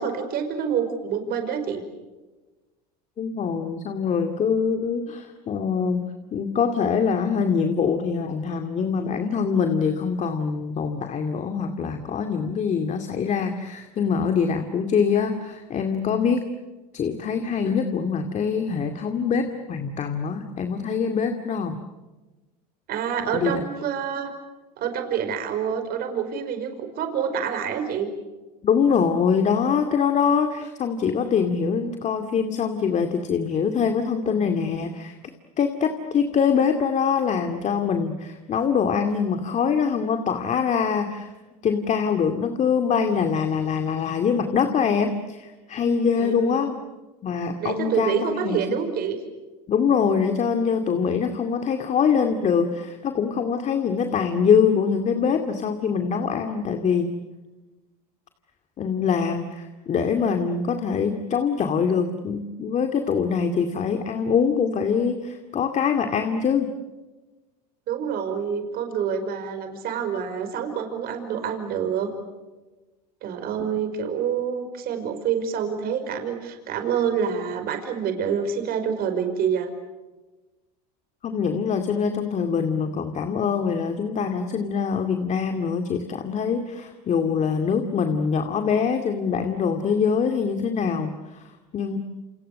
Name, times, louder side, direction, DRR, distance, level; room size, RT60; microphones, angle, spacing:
voice 1, 0.0-1.8 22.9-24.3 24.8-28.1 46.2-46.7 47.6-49.2 67.9-72.1 73.2-79.7, right 7 dB, 50° right, 7 dB, 5.3 m, -27 dB
voice 2, 3.2-6.0 6.3-16.5 16.9-21.8 23.3-23.5 28.6-35.2 35.6-41.3 41.6-46.8 47.2-48.8 49.7-57.1 58.8-66.7 81.2-92.0, left 6 dB, 35° left, 6 dB, 2.3 m, -24 dB
29.0 x 27.5 x 6.7 m, 1.2 s
hypercardioid pair, 95°, 20 cm